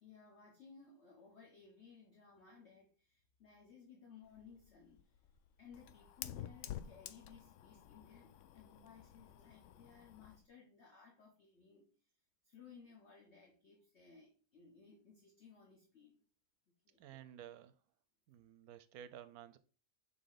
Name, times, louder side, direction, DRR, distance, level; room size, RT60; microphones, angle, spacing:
voice 1, 0.0-5.2 5.6-11.9 12.4-16.2 16.7-17.0, left 6 dB, 45° left, 1.3 m, -60 dB
Fire, 4.2-10.5, left 11 dB, 70° left, 0.7 m, -51 dB
voice 2, 17.0-17.8 18.3-19.6, right 10 dB, 75° right, 1.0 m, -53 dB
6.7 x 3.9 x 3.8 m
omnidirectional pair, 1.7 m